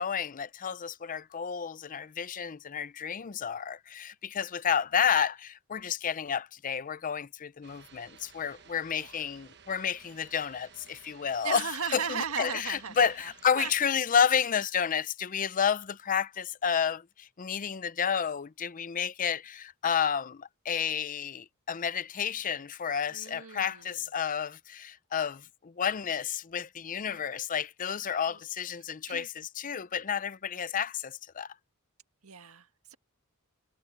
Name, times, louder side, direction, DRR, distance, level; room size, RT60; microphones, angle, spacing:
voice 1, 0.0-11.7 11.9-31.5, left 7 dB, 35° left, 0.5 m, -31 dB
sound 1, 7.6-13.8, right 7 dB, 50° right, 1.2 m, -56 dB
voice 2, 11.4-13.3 13.5-13.7 23.1-24.0 28.0-28.4 29.1-29.3 32.2-33.0, right 6 dB, 70° right, 1.7 m, -37 dB
head